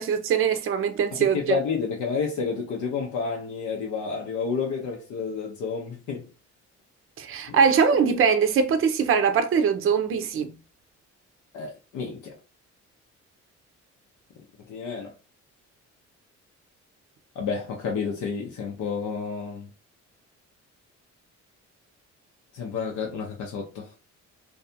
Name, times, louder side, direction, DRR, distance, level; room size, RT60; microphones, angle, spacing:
voice 1, 0.0-1.6 7.2-10.5, right 6 dB, 45° right, 0.5 m, -22 dB
voice 2, 1.1-6.3 7.5-7.6 11.5-12.4 14.7-15.1 17.4-19.7 22.5-23.9, left 5 dB, 75° left, 0.7 m, -30 dB
2.6 x 2.3 x 2.6 m
cardioid pair, 90°, 30 cm